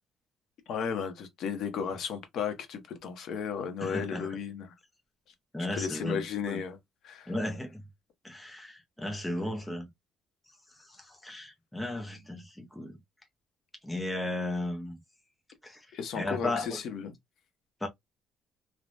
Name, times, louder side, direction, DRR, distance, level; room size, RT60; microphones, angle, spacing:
voice 1, 0.7-4.7 5.7-6.8 7.0-7.3 15.9-17.1, left 7 dB, 60° left, 0.7 m, -34 dB
voice 2, 3.8-4.4 5.5-6.6 7.3-7.8 8.2-9.9 10.8-13.0 13.8-15.0 15.6-15.9 16.1-16.8 17.8-17.9, left 1 dB, 5° left, 0.5 m, -35 dB
3.2 x 2.1 x 2.4 m
cardioid pair, 155°, 0 cm